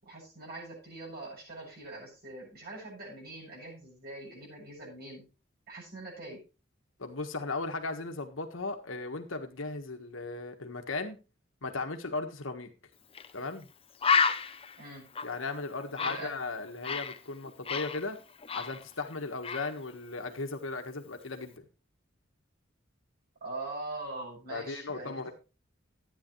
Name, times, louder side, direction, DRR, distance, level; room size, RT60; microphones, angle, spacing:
voice 1, 0.0-5.2 5.7-6.4 14.8-15.0 15.9-16.3 23.4-25.3, right 2 dB, 55° right, -2 dB, 7.1 m, -43 dB
voice 2, 7.0-11.2 11.6-12.7 13.3-13.7 15.2-18.2 18.5-21.6 24.5-25.3, left 3 dB, 85° left, 6 dB, 1.6 m, -36 dB
Bird, 13.1-13.3 13.6-13.7 14.0-17.2 17.5-19.1 19.4-19.7, left 5 dB, 30° left, 0.7 m, -31 dB
13.0 x 9.6 x 3.2 m, 0.31 s
head